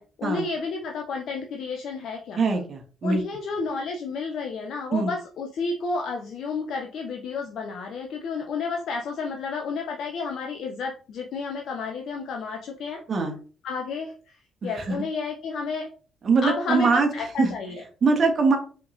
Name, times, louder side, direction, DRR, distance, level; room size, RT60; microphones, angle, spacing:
voice 1, 0.0-2.4 3.0-13.0 13.6-15.9 16.4-17.8, left 4 dB, 60° left, 3 dB, 0.6 m, -31 dB
voice 2, 2.4-3.2 4.9-5.1 13.1-13.3 14.6-15.0 16.2-17.1 17.4-17.5 18.0-18.6, right 4 dB, 45° right, 4 dB, 1.2 m, -22 dB
5.5 x 3.6 x 2.6 m, 0.39 s
figure-of-eight pair, 45°, 0 cm